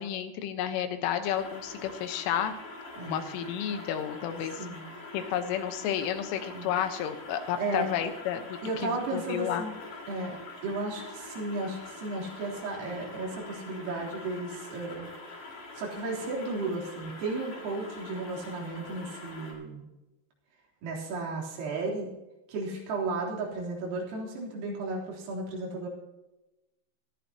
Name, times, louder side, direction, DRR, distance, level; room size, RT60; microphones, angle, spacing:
voice 1, 0.0-2.5 3.0-4.7 5.1-9.7, left 9 dB, 80° left, 8 dB, 3.6 m, -31 dB
sound 1, 1.2-19.5, left 3 dB, 50° left, 5.7 m, -44 dB
voice 2, 3.0-3.3 4.6-4.9 6.5-6.7 7.6-7.9 8.6-9.7 10.1-15.1 15.3-15.4 15.8-19.9 20.8-22.1 22.5-25.9, right 3 dB, 85° right, -3 dB, 6.2 m, -34 dB
21.5 x 13.5 x 2.9 m, 1.0 s
omnidirectional pair, 5.8 m